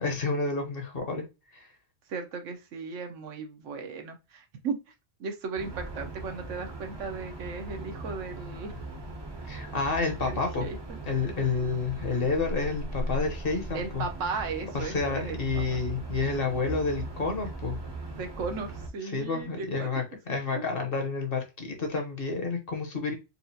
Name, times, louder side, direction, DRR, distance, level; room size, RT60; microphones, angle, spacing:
voice 1, 0.0-1.2 1.5-1.7 9.5-10.6 11.0-14.0 14.7-17.8 19.1-23.1, left 4 dB, 50° left, 4 dB, 1.0 m, -30 dB
voice 2, 2.1-4.8 5.2-8.7 9.4-9.5 10.2-10.8 13.7-15.8 18.1-19.9 20.3-20.6, right 4 dB, 80° right, 5 dB, 1.1 m, -36 dB
sound 1, 5.6-18.9, right 2 dB, 30° right, 0.6 m, -38 dB
4.2 x 2.3 x 2.7 m, 0.26 s
omnidirectional pair, 1.3 m